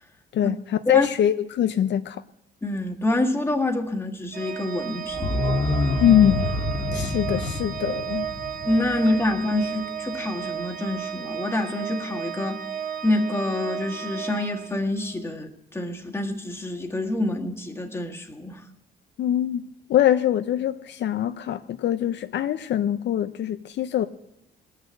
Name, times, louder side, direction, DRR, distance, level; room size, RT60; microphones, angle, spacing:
voice 1, 0.3-2.2 6.0-6.5 6.9-8.3 19.2-19.6 19.9-24.1, left 10 dB, 65° left, 0.6 m, -23 dB
voice 2, 2.6-5.4 6.9-7.1 8.6-12.6 13.0-18.6, left 2 dB, 10° left, 1.7 m, -27 dB
Organ, 4.3-15.2, right 8 dB, 45° right, 1.2 m, -33 dB
sound 1, 5.1-9.9 10.2-10.3, left 2 dB, 35° left, 1.5 m, -28 dB
19.0 x 6.6 x 7.8 m
cardioid pair, 90°, 20 cm